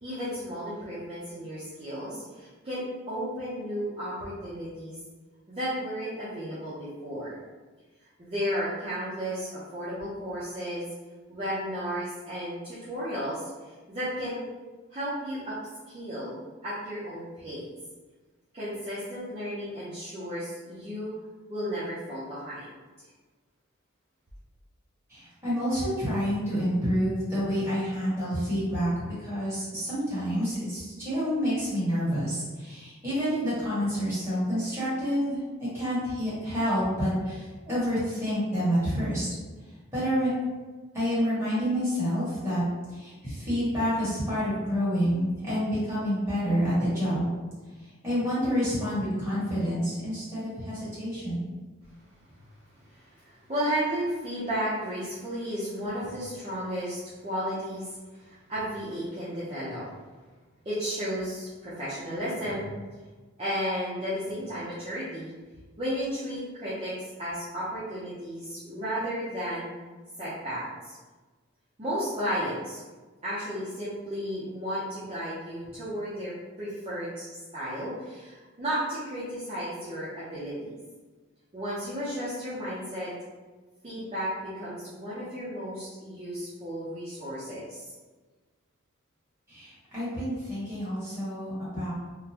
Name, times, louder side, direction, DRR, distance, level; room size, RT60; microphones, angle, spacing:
voice 1, 0.0-5.0 5.5-7.4 8.2-10.9 11.3-13.5 13.9-14.4 14.9-15.6 15.9-17.7 18.5-21.1 21.5-22.7 52.9-59.8 60.6-62.7 63.4-65.3 65.8-66.9 67.2-69.7 70.2-70.9 71.8-72.8 73.2-80.7 81.5-83.1 83.8-87.9, equal, 30° right, -11 dB, 0.7 m, -33 dB
voice 2, 25.1-39.3 39.9-40.3 40.9-42.6 42.9-47.3 48.0-51.5 89.5-91.9, equal, 15° right, -11 dB, 1.5 m, -28 dB
3.7 x 2.2 x 2.9 m, 1.3 s
head